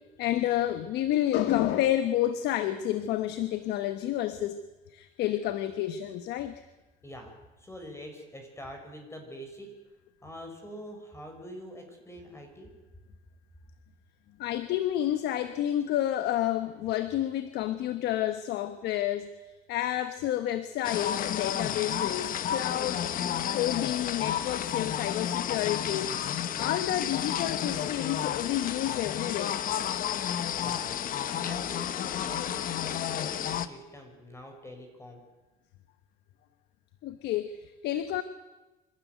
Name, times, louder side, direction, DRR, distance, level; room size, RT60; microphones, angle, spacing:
voice 1, 0.2-4.6 4.9-6.6 14.4-19.3 19.7-23.1 23.5-26.2 26.6-29.6 37.0-38.2, left 12 dB, 85° left, 11 dB, 1.2 m, -30 dB
voice 2, 7.0-9.7 10.2-12.7 18.0-18.1 30.5-35.2, equal, 15° left, 3 dB, 5.7 m, -45 dB
sound 1, 20.8-33.7, left 10 dB, 55° left, 1.1 m, -31 dB
25.5 x 13.0 x 9.4 m, 1.1 s
cardioid pair, 110°, 17 cm